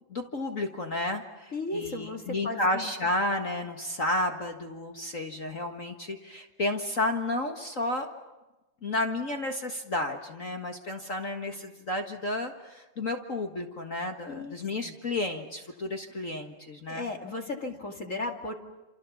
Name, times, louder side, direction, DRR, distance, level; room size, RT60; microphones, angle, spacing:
voice 1, 0.1-8.1 8.8-17.1, left 2 dB, 50° left, 5 dB, 0.9 m, -32 dB
voice 2, 1.5-2.9 14.3-14.6 14.8-14.9 16.9-18.5, left 2 dB, 25° left, 3 dB, 2.0 m, -35 dB
29.0 x 28.0 x 7.1 m, 1.1 s
omnidirectional pair, 3.9 m